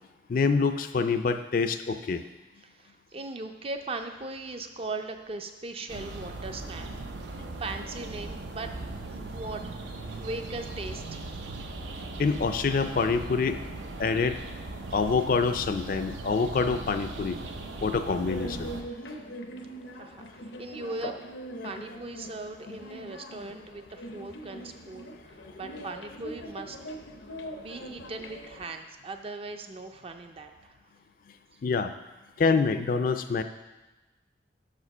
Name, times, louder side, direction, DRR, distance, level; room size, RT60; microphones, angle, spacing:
voice 1, 0.3-2.2 12.2-13.6 14.0-14.4 14.9-17.4 17.8-18.7 31.6-31.9 32.4-33.4, left 4 dB, 50° left, 9 dB, 0.4 m, -26 dB
voice 2, 2.6-6.9 7.3-8.7 9.1-9.6 10.1-11.3 19.0-19.2 19.9-21.1 21.6-26.8 27.6-30.8, right 2 dB, 30° right, 6 dB, 0.4 m, -39 dB
sound 1, 5.9-18.8, right 2 dB, 85° right, 0.7 m, -39 dB
sound 2, 18.0-28.7, equal, 80° left, 0.7 m, -42 dB
6.5 x 5.0 x 5.4 m, 1.1 s
head